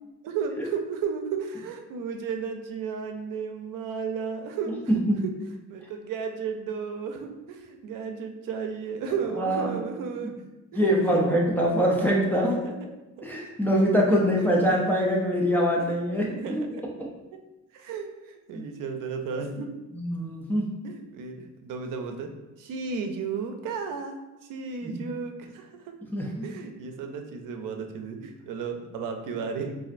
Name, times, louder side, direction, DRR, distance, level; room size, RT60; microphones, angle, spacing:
voice 1, 0.0-4.8 5.2-5.3 5.7-10.3 10.7-10.8 11.1-11.2 12.5-12.7 13.2-13.3 14.4-14.9 16.1-16.8 17.7-19.7 20.8-22.3 22.6-25.9 26.4-29.8, right 5 dB, 85° right, 5 dB, 0.5 m, -34 dB
voice 2, 9.4-9.7 10.7-12.6 13.2-16.3 16.6-16.7 18.5-18.6 19.9-20.7 24.8-25.0 26.1-26.4, equal, 5° left, -3 dB, 0.3 m, -23 dB
4.1 x 2.4 x 2.4 m, 1.0 s
cardioid pair, 165°, 31 cm